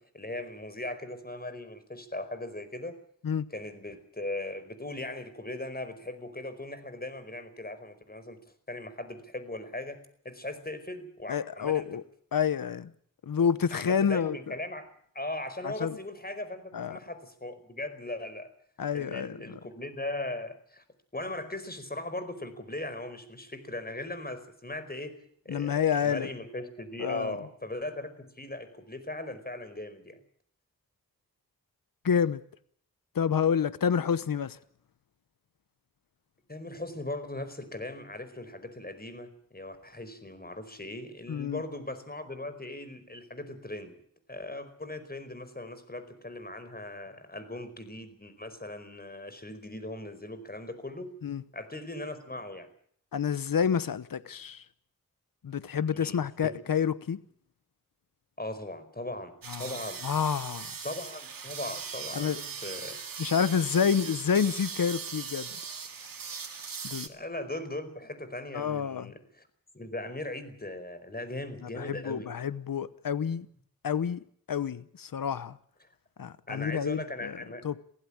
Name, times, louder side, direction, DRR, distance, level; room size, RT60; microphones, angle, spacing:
voice 1, 0.0-3.0 3.5-8.4 8.7-10.0 10.2-11.9 13.7-18.5 18.9-20.8 21.1-30.2 36.5-43.9 44.3-51.1 51.5-52.7 55.9-56.5 58.4-60.0 60.8-63.0 67.0-69.5 69.7-72.3 76.5-77.6, left 1 dB, 30° left, 4.8 m, -39 dB
voice 2, 11.3-12.0 12.3-12.9 13.3-14.5 15.6-16.0 16.7-17.0 18.8-19.6 25.5-26.3 27.0-27.4 32.0-32.4 33.1-34.6 41.3-41.6 51.2-51.4 53.1-54.6 55.4-57.2 59.5-59.8 60.0-60.7 62.1-62.4 63.2-65.6 66.8-67.1 68.5-69.1 71.6-73.5 73.8-75.6 76.2-77.4 77.6-77.8, left 7 dB, 85° left, 1.0 m, -29 dB
sound 1, 59.4-67.1, right 6 dB, 85° right, 2.2 m, -39 dB
23.0 x 16.0 x 8.8 m
cardioid pair, 55°, 33 cm